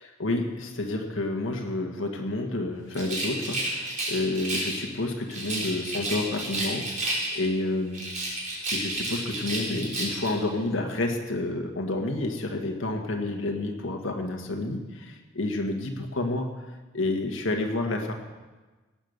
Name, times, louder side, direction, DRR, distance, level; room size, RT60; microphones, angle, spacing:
voice 1, 0.2-8.0 8.7-16.5 16.9-18.1, left 2 dB, 75° left, 2 dB, 1.7 m, -29 dB
Rattle, 2.9-4.8 5.3-7.6 7.9-10.4, right 1 dB, 40° right, 4.2 m, -31 dB
18.0 x 7.3 x 6.6 m, 1.2 s
head